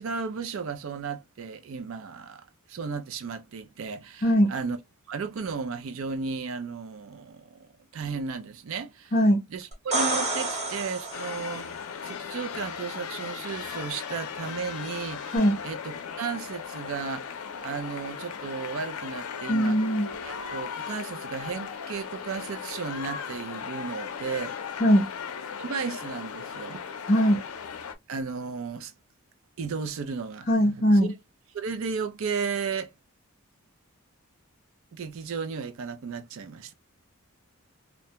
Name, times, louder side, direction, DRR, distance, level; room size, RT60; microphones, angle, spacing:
voice 1, 0.0-4.8 5.1-9.1 9.5-11.7 12.0-15.3 15.6-17.3 17.6-19.8 20.2-24.6 25.6-26.9 28.1-28.9 29.6-30.7 31.0-31.2 31.5-32.9 34.9-36.7, right 5 dB, 65° right, 0.4 m, -34 dB
voice 2, 4.2-4.5 9.1-9.4 15.3-15.6 19.5-20.1 24.8-25.0 27.1-27.4 30.5-31.1, equal, 35° left, 0.5 m, -20 dB
sound 1, 9.7-11.6 15.4-15.5, right 2 dB, 30° right, 0.9 m, -29 dB
sound 2, 11.1-28.0, left 6 dB, 85° left, 0.5 m, -37 dB
2.5 x 2.2 x 2.8 m
head